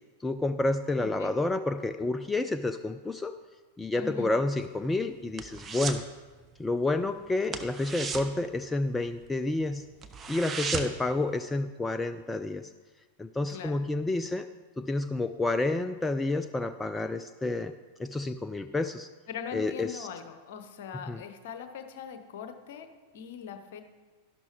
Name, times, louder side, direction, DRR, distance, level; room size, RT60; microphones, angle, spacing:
voice 1, 0.2-3.3 3.8-6.0 6.6-9.8 10.3-12.7 13.2-14.5 14.8-17.7 18.0-19.1 19.5-20.1 21.1-21.2, left 2 dB, 10° left, 10 dB, 0.3 m, -29 dB
voice 2, 1.0-1.3 3.9-4.3 13.5-13.8 19.3-23.8, left 7 dB, 55° left, 8 dB, 0.9 m, -41 dB
sound 1, 4.5-6.1 6.4-6.7 6.9-7.1 7.4-9.3 9.7-9.8 10.0-11.1 11.5-11.6, right 5 dB, 20° right, 0.7 m, -36 dB
12.0 x 11.5 x 3.0 m, 1.3 s
figure-of-eight pair, 90°, 0 cm